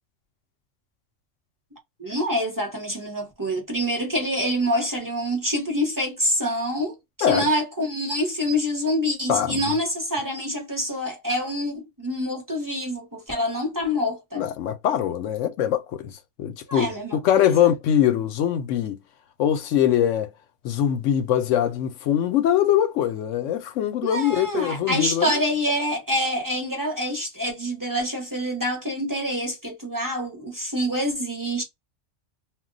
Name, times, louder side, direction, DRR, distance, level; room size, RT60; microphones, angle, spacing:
voice 1, 2.0-14.5 16.7-17.7 24.0-31.6, equal, 20° right, 0.7 m, -26 dB
voice 2, 9.3-9.7 14.3-19.0 19.4-20.3 20.6-25.4, left 10 dB, 85° left, 0.9 m, -23 dB
2.2 x 2.2 x 3.7 m
omnidirectional pair, 1.3 m